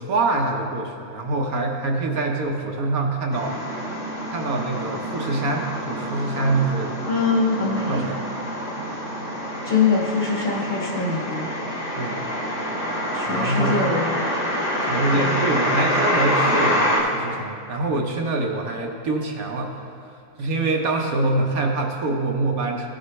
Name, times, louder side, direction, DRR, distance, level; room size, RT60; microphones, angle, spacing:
voice 1, 0.0-3.5 4.3-6.9 7.9-8.2 12.0-12.2 13.3-13.8 14.8-19.8 20.4-22.9, right 2 dB, 80° right, 1 dB, 1.5 m, -25 dB
sound 1, 3.3-17.0, equal, 60° left, 2.1 m, -26 dB
voice 2, 7.0-8.0 9.6-11.5 13.1-14.2 15.1-15.3, left 5 dB, 40° left, -4 dB, 1.9 m, -23 dB
15.5 x 6.6 x 3.2 m, 2.5 s
omnidirectional pair, 1.5 m